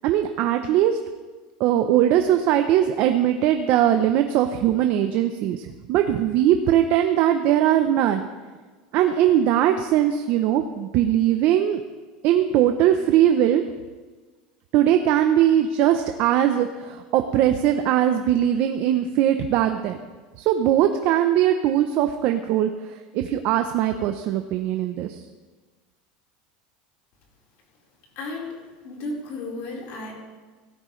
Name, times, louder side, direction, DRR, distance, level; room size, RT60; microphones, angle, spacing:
voice 1, 0.0-1.0 1.6-8.2 8.9-11.8 12.2-13.6 14.7-20.0 20.4-25.2, right 11 dB, 50° right, 7 dB, 0.7 m, -20 dB
voice 2, 28.2-28.6 28.8-30.1, left 2 dB, 55° left, -2 dB, 4.3 m, -33 dB
16.5 x 13.0 x 3.2 m, 1.4 s
supercardioid pair, 145°, 4 cm